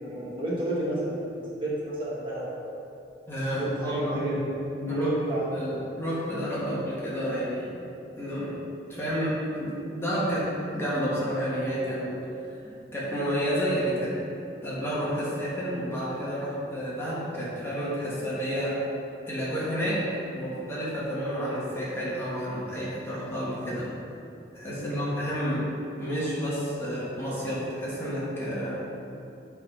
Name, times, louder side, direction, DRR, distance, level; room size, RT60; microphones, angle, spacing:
voice 1, 0.0-2.5 3.6-5.4 24.8-25.1, right 1 dB, 30° right, -7 dB, 1.4 m, -30 dB
voice 2, 3.3-4.2 4.9-5.1 5.5-7.7 8.1-8.5 8.9-12.2 12.5-12.6 12.9-14.1 14.6-18.8 19.3-20.0 20.3-23.9 24.5-25.6 26.0-28.8, equal, 15° left, -8 dB, 1.6 m, -30 dB
9.0 x 3.8 x 5.5 m, 2.7 s
head